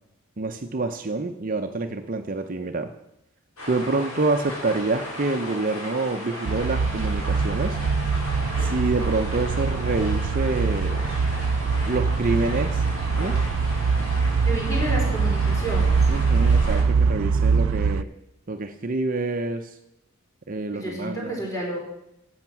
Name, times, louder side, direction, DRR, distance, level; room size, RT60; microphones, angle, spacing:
voice 1, 0.4-2.9 3.7-7.8 8.6-11.1 11.8-12.8 13.2-13.4 16.1-18.1 18.5-19.7 20.5-21.4, right 3 dB, 40° right, 6 dB, 0.7 m, -27 dB
sound 1, 3.6-16.8, left 1 dB, 90° left, 4.6 m, -36 dB
sound 2, 6.5-18.0, right 5 dB, 75° right, 0.4 m, -23 dB
voice 2, 14.4-16.1 20.7-21.8, right 1 dB, 15° left, -2 dB, 3.8 m, -30 dB
12.0 x 8.0 x 6.0 m, 0.84 s
head